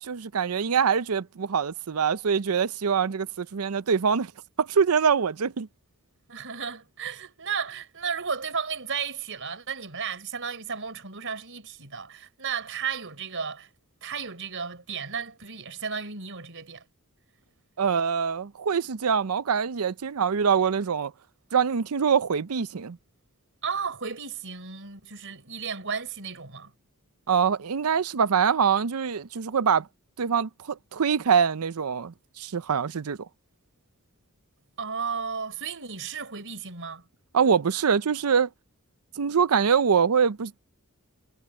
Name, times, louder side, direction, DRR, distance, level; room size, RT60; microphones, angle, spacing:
voice 1, 0.0-4.3 4.6-5.7 17.8-21.1 21.5-23.0 27.3-29.9 30.2-33.2 37.3-38.5 39.2-40.6, right 6 dB, 75° right, 0.6 m, -24 dB
voice 2, 6.3-13.7 14.0-16.8 23.6-26.7 34.8-37.0, right 6 dB, 60° right, 5.3 m, -34 dB
head